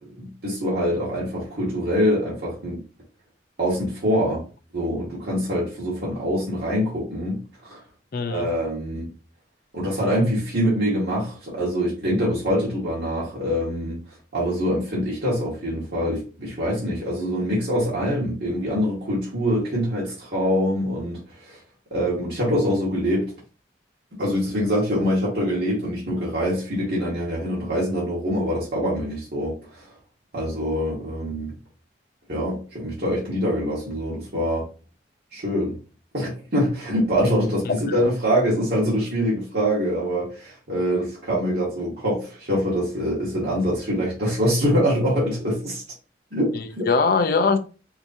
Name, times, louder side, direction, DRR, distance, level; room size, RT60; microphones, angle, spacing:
voice 1, 0.1-2.8 3.6-4.4 4.7-7.8 8.3-9.0 9.7-14.0 14.3-21.6 21.9-23.3 24.2-29.9 30.3-31.5 32.3-34.6 35.3-35.7 36.1-45.8 46.3-46.9, equal, 65° right, 1.5 m, -24 dB
voice 2, 8.1-8.5 37.6-37.8 46.5-47.6, left 4 dB, 55° left, 0.5 m, -21 dB
4.7 x 2.6 x 2.6 m
head